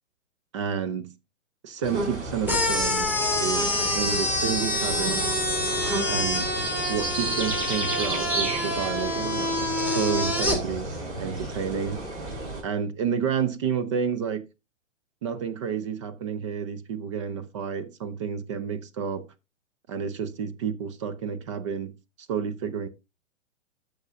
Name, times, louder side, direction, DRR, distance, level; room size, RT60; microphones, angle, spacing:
voice 1, 0.5-1.1 1.6-3.1 3.4-5.3 6.1-6.6 6.9-10.9 11.2-12.0 12.6-14.5 15.2-19.3 19.9-22.0 22.3-22.9, right 7 dB, 25° right, 0.4 m, -30 dB
sound 1, 1.8-12.6, right 2 dB, 60° right, 5.5 m, -32 dB
sound 2, 2.5-10.6, left 1 dB, 5° right, 1.4 m, -27 dB
12.5 x 6.3 x 2.5 m
hypercardioid pair, 120°, 38 cm